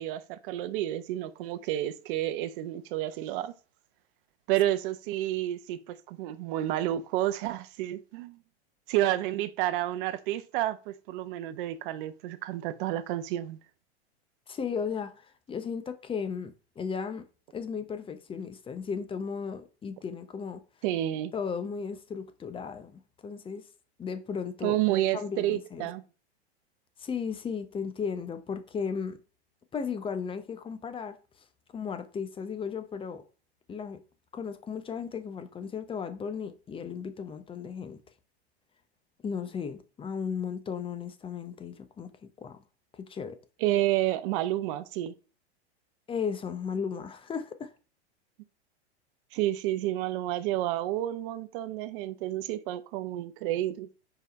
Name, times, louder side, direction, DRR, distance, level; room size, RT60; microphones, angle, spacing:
voice 1, 0.0-3.5 4.5-8.4 8.9-13.6 20.8-21.3 24.6-26.0 43.6-45.1 49.3-53.9, right 14 dB, 50° right, 0.9 m, -30 dB
voice 2, 14.5-15.1 15.5-17.2 17.5-20.6 21.3-23.6 24.0-24.8 25.1-25.9 27.0-29.2 29.7-31.2 31.7-33.2 33.7-34.0 34.3-38.0 39.2-42.1 42.4-42.6 42.9-43.4 46.1-47.7, left 6 dB, 15° left, 0.8 m, -35 dB
5.5 x 5.0 x 4.1 m
hypercardioid pair, 115°, 33 cm